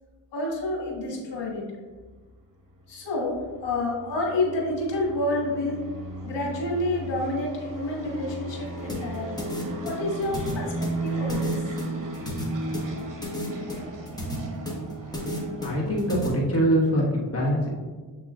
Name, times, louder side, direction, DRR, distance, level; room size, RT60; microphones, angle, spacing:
voice 1, 0.3-1.6 2.9-5.8 6.2-9.4 9.8-11.6, left 2 dB, 80° left, -1 dB, 1.3 m, -29 dB
sound 1, 2.8-16.1, right 2 dB, 50° right, 1.0 m, -36 dB
sound 2, 8.9-16.3, left 1 dB, 10° left, 1.2 m, -33 dB
voice 2, 15.6-17.7, equal, 35° left, -4 dB, 1.4 m, -23 dB
7.2 x 3.0 x 2.4 m, 1.4 s
cardioid pair, 65°, 42 cm